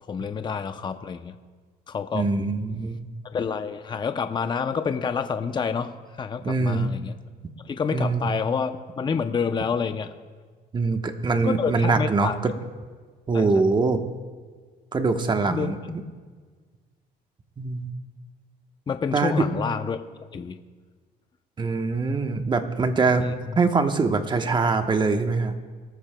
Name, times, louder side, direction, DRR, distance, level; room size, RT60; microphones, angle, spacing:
voice 1, 0.0-1.4 1.9-2.3 3.3-7.2 7.6-10.1 11.4-12.4 13.3-13.7 15.5-16.1 18.9-20.0 20.3-20.6 23.2-23.6, left 6 dB, 25° left, 8 dB, 0.6 m, -28 dB
voice 2, 2.1-3.0 6.4-6.9 7.9-8.2 10.7-12.5 13.3-14.0 14.9-15.8 17.6-17.9 19.1-19.4 21.6-23.3 23.6-25.6, right 4 dB, 25° right, 6 dB, 1.1 m, -23 dB
24.5 x 14.0 x 2.3 m, 1.5 s
cardioid pair, 110°, 17 cm